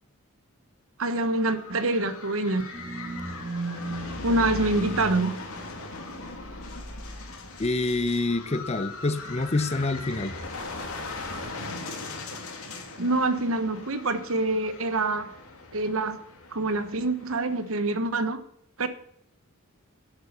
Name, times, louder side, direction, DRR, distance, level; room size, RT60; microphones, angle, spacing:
voice 1, 1.0-2.6 4.2-5.3 13.0-15.3 15.7-16.2 16.5-18.4 18.8-18.9, right 2 dB, 70° right, 1.2 m, -26 dB
sound 1, 1.1-17.7, left 3 dB, 90° left, 2.7 m, -40 dB
sound 2, 2.7-8.4 8.7-8.8, right 2 dB, 25° right, 2.5 m, -38 dB
voice 2, 7.6-10.3, left 2 dB, 30° left, 0.7 m, -27 dB
10.5 x 8.7 x 6.8 m
head